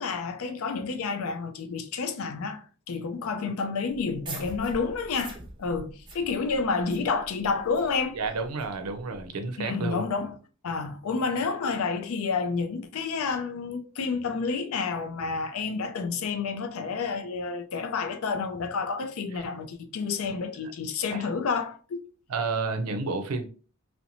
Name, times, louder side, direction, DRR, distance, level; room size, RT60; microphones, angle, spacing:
voice 1, 0.0-8.2 9.6-10.4 10.6-22.0, left 4 dB, 70° left, 0.4 m, -30 dB
sound 1, 3.9-9.3, right 2 dB, 20° right, 0.5 m, -44 dB
voice 2, 8.1-10.0 19.4-19.5 21.1-21.3 22.3-23.5, right 4 dB, 90° right, 0.5 m, -31 dB
2.5 x 2.1 x 2.8 m
head